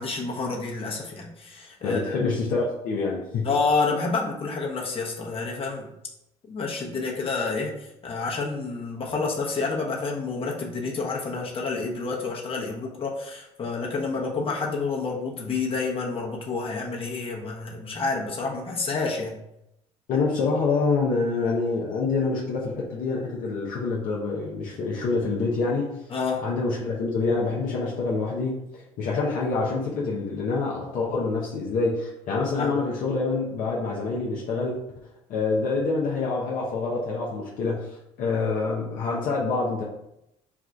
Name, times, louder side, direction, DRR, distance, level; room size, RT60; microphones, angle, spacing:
voice 1, 0.0-2.2 3.4-5.9 6.5-19.3 26.1-26.4 32.6-32.8, left 4 dB, 40° left, -2 dB, 1.1 m, -29 dB
voice 2, 1.8-3.5 20.1-26.0 26.4-34.8 35.3-39.8, left 3 dB, 65° left, -3 dB, 0.8 m, -26 dB
3.6 x 2.4 x 4.5 m, 0.84 s
hypercardioid pair, 60°, 15 cm